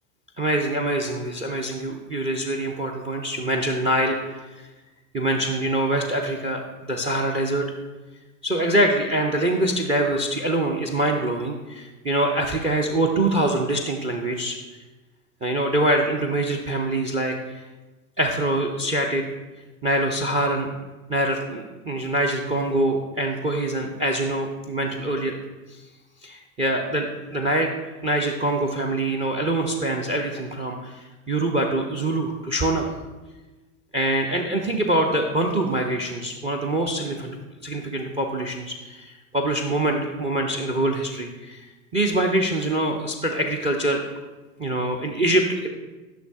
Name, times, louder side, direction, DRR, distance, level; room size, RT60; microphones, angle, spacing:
voice 1, 0.4-4.7 5.1-7.7 8.4-14.6 15.4-17.6 18.2-19.2 19.8-20.7 21.1-25.4 25.7-25.8 26.2-27.7 28.0-32.9 33.9-37.4 37.6-41.6 41.9-44.0 44.6-45.7, right 1 dB, 15° right, 3 dB, 0.3 m, -24 dB
11.5 x 6.3 x 2.3 m, 1.2 s
hypercardioid pair, 85°, 47 cm